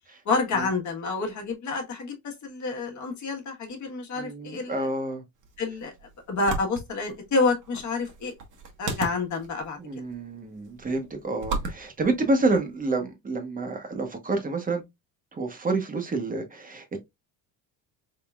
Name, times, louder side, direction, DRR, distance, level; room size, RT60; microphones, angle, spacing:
voice 1, 0.2-4.9 5.6-5.9 6.3-8.3 8.8-9.8, left 3 dB, 45° left, 1.4 m, -28 dB
voice 2, 4.2-5.2 9.8-14.8 15.3-17.0, right 2 dB, 20° right, 1.0 m, -28 dB
sound 1, 5.3-13.0, right 3 dB, 45° right, 1.2 m, -37 dB
3.8 x 3.7 x 2.3 m
cardioid pair, 130°, 41 cm